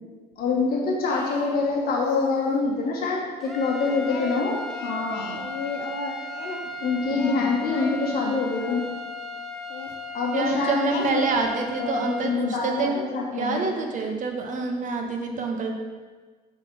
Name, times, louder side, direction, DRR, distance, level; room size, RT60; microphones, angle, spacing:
voice 1, 0.4-4.6 4.8-5.4 6.8-8.8 10.1-11.2 11.8-13.6, left 4 dB, 65° left, -2 dB, 1.4 m, -26 dB
Singing, 1.1-2.7 4.1-6.6 7.1-8.9 9.7-9.9 10.9-11.5, left 5 dB, 80° left, 0.8 m, -33 dB
sound 1, 3.4-12.4, left 1 dB, ahead, 0.6 m, -36 dB
voice 2, 10.3-13.0 13.3-15.8, right 4 dB, 50° right, 3 dB, 0.9 m, -27 dB
5.6 x 5.4 x 4.7 m, 1.4 s
cardioid pair, 110°, 17 cm